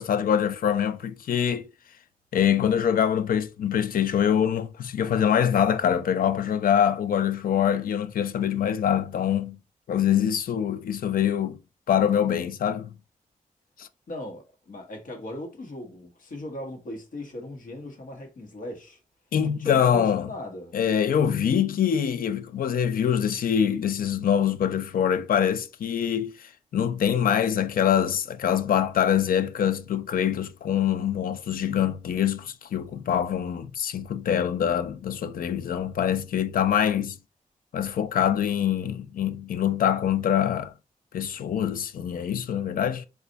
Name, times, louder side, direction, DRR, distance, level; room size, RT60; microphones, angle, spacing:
voice 1, 0.0-1.7 2.3-9.6 9.9-11.6 11.9-13.0 13.8-13.9 19.3-20.3 20.7-26.3 26.7-37.2 37.7-40.7 41.1-43.0, left 9 dB, 85° left, 0.5 m, -24 dB
voice 2, 14.1-19.0 19.4-20.8 21.0-21.3, left 1 dB, 70° left, 1.3 m, -38 dB
4.1 x 2.4 x 3.9 m
wide cardioid pair, 110°, 14 cm